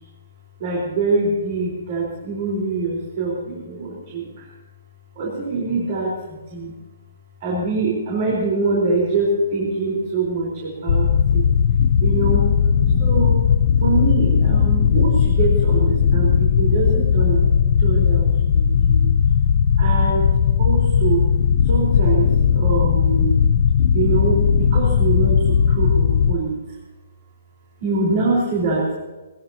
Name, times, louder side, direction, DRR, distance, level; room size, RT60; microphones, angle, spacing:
voice 1, 0.6-4.3 5.2-6.1 6.5-6.7 7.4-11.1 11.3-11.4 12.0-12.4 12.7-13.3 13.8-17.4 17.8-18.3 18.5-19.0 19.8-20.3 20.6-21.2 21.7-22.3 22.5-23.3 23.9-26.5 27.8-28.9, right 3 dB, 30° right, -3 dB, 4.4 m, -24 dB
sound 1, 10.9-26.3, left 7 dB, 40° left, 0.6 m, -17 dB
23.0 x 20.0 x 2.9 m, 1.2 s
hypercardioid pair, 180°, 0 cm